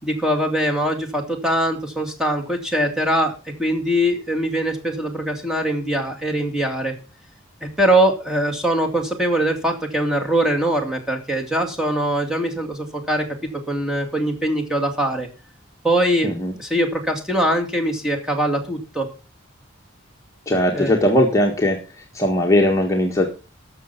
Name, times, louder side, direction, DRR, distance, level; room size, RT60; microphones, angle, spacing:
voice 1, 0.0-3.3 3.6-6.9 7.6-13.3 13.7-15.3 15.8-16.3 16.6-19.1 20.7-20.9, right 1 dB, 5° right, 1 dB, 2.3 m, -22 dB
voice 2, 20.5-21.8 22.1-23.3, left 1 dB, 15° left, 0 dB, 1.6 m, -19 dB
12.5 x 7.0 x 5.9 m, 0.33 s
head